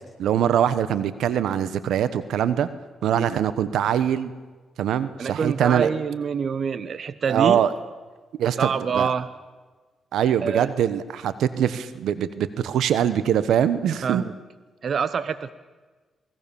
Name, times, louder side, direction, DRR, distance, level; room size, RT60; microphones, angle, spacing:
voice 1, 0.2-2.7 3.0-4.3 4.8-5.9 7.3-7.7 8.4-9.1 10.1-14.2, right 9 dB, 85° right, 14 dB, 1.2 m, -23 dB
voice 2, 5.2-7.6 8.6-9.3 10.4-10.7 14.0-14.3 14.8-15.5, right 6 dB, 60° right, 14 dB, 1.0 m, -26 dB
28.0 x 19.5 x 7.2 m, 1.3 s
cardioid pair, 70°, 0 cm